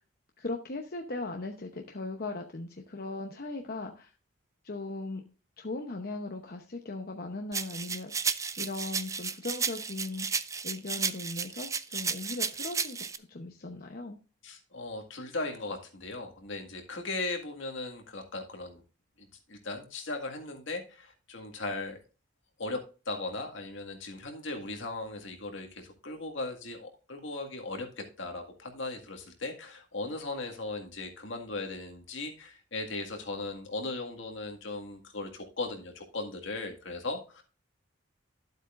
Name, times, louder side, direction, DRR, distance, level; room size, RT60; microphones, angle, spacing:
voice 1, 0.4-4.1 4.6-5.2 5.6-14.2, left 2 dB, 50° left, 2 dB, 0.9 m, -38 dB
sound 1, 7.5-13.2, right 5 dB, 15° right, 0.3 m, -33 dB
voice 2, 14.4-18.8 19.2-22.0 22.6-22.8 23.1-37.4, left 2 dB, 70° left, 3 dB, 1.9 m, -38 dB
12.0 x 8.0 x 2.5 m, 0.32 s
head